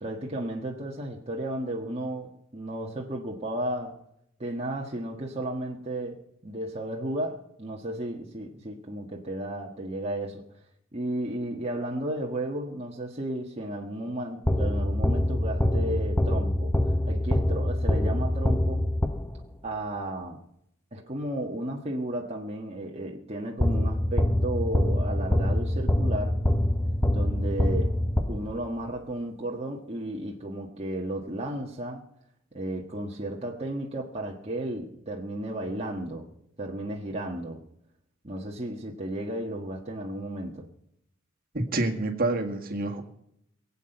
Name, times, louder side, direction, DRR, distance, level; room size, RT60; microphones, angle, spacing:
voice 1, 0.0-4.0 4.4-10.5 10.9-16.7 17.0-18.8 19.6-20.4 20.9-26.4 27.1-28.0 28.3-32.0 32.5-36.3 36.6-37.6 38.2-40.7, right 1 dB, 30° right, -1 dB, 1.5 m, -34 dB
sound 1, 14.5-19.6 23.6-28.8, left 1 dB, 10° left, 0.8 m, -25 dB
voice 2, 41.5-43.0, right 2 dB, 45° right, 3 dB, 1.8 m, -27 dB
22.0 x 8.5 x 5.8 m, 0.75 s
head